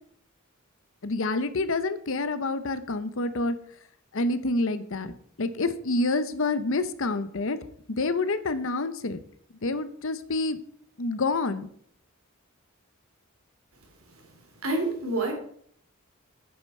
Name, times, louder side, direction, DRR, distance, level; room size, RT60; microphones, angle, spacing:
voice 1, 1.0-3.6 4.1-5.1 5.4-7.6 7.9-9.2 9.6-10.6 11.0-11.7, left 2 dB, 65° left, 12 dB, 0.8 m, -27 dB
voice 2, 14.6-15.3, right 2 dB, 80° right, 3 dB, 3.0 m, -27 dB
8.8 x 7.4 x 5.5 m, 0.63 s
head